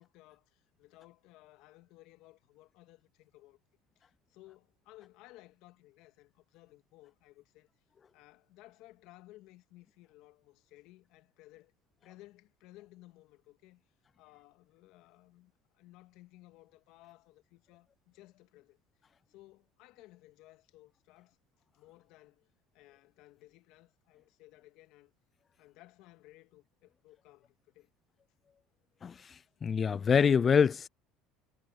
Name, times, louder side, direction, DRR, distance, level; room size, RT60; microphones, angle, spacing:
voice 1, 0.0-3.6 4.0-7.7 8.1-11.7 12.0-18.8 19.3-21.4 21.7-25.1 25.6-27.9, left 18 dB, 70° left, 2.0 m, -58 dB
voice 2, 29.0-30.9, left 6 dB, 30° left, 0.5 m, -26 dB
supercardioid pair, 105°, 0 cm